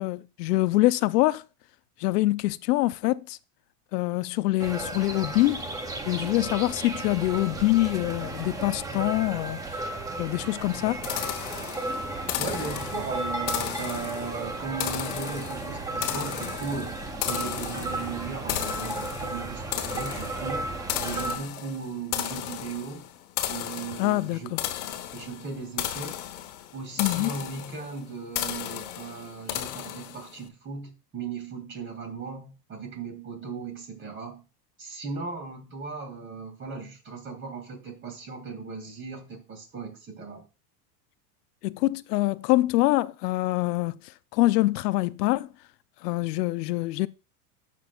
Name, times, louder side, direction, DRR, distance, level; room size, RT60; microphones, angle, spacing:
voice 1, 0.0-1.4 2.0-3.4 3.9-5.7 6.1-9.6 10.2-11.0 24.0-24.6 27.0-27.3 41.6-44.0 44.3-45.5 46.0-47.1, left 18 dB, 85° left, 0.6 m, -25 dB
sound 1, 4.6-21.4, right 2 dB, 10° right, 0.5 m, -34 dB
sound 2, 11.0-30.4, left 13 dB, 65° left, 1.2 m, -35 dB
voice 2, 12.4-17.0 17.3-20.7 21.0-23.0 23.5-24.5 25.1-26.1 26.7-34.4 34.8-40.4, right 4 dB, 25° right, 2.2 m, -37 dB
14.0 x 6.1 x 2.3 m
supercardioid pair, 150°, 46 cm